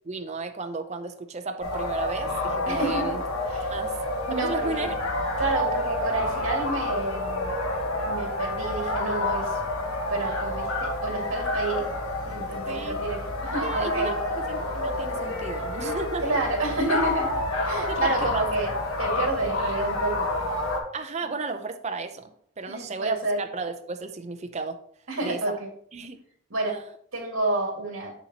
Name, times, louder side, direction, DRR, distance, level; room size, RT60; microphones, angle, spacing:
voice 1, 0.0-3.2 3.7-3.9 4.3-5.0 12.7-13.0 13.6-14.1 14.5-16.3 17.8-18.4 20.9-24.8 25.2-25.6 25.9-26.2 26.6-26.8, right 4 dB, 30° right, 7 dB, 0.6 m, -33 dB
sound 1, 1.6-20.8, left 2 dB, 85° left, 1.3 m, -29 dB
voice 2, 2.7-3.2 3.5-3.7 4.3-4.9 5.4-7.5 8.0-9.6 10.1-11.8 12.3-14.1 16.2-17.3 17.6-18.7 19.0-20.3 22.7-23.4 25.1-25.7 26.5-26.8 27.1-28.1, right 2 dB, 70° right, 0 dB, 2.1 m, -29 dB
7.2 x 7.0 x 2.9 m, 0.64 s
head